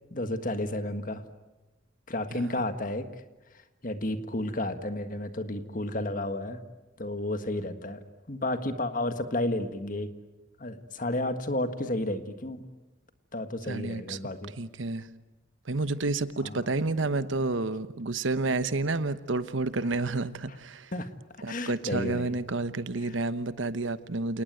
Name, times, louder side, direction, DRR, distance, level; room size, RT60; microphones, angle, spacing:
voice 1, 0.1-1.2 2.1-3.1 3.8-6.6 7.0-8.0 8.3-10.1 10.6-12.6 13.3-14.5 16.4-16.7 20.9-21.1 21.5-22.4 23.0-23.1, left 1 dB, 45° left, 1.7 m, -32 dB
voice 2, 2.3-2.6 13.7-14.2 14.6-15.1 15.7-20.9 21.4-24.4, right 3 dB, 85° right, 1.0 m, -30 dB
28.5 x 19.0 x 9.1 m
head